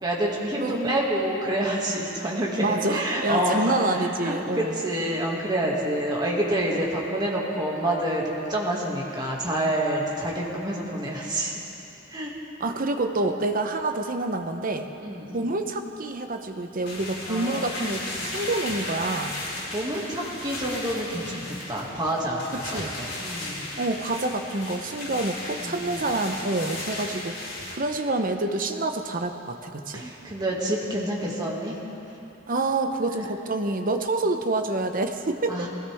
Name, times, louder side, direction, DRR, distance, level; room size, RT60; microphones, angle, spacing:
voice 1, 0.0-11.5 12.1-12.3 15.0-15.4 17.3-17.7 18.2-18.4 19.7-22.5 22.7-23.7 25.6-26.2 29.9-31.8 35.5-35.7, right 1 dB, 20° right, -4 dB, 2.1 m, -28 dB
voice 2, 0.5-1.0 2.6-4.8 12.6-14.9 15.3-19.4 22.5-22.9 23.8-27.4 27.7-30.0 32.5-35.7, right 2 dB, 40° right, 6 dB, 0.8 m, -27 dB
sound 1, 16.9-27.8, left 2 dB, 75° left, 4.5 m, -35 dB
20.5 x 16.0 x 3.5 m, 2.9 s
head